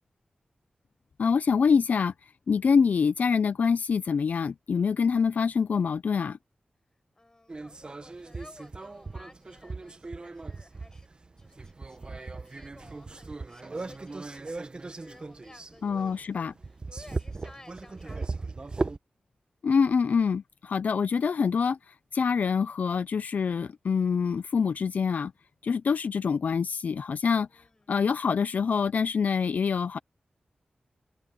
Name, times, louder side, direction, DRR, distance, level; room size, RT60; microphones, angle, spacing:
voice 1, 1.2-6.4 15.8-16.5 19.6-25.3 25.6-30.0, left 6 dB, 70° left, 0.4 m, -26 dB
voice 2, 7.1-11.1 11.4-18.7 27.5-27.9, left 2 dB, 20° left, 6.5 m, -55 dB
sound 1, 7.5-19.0, right 3 dB, 35° right, 0.9 m, -38 dB
wide cardioid pair, 125°, 3 cm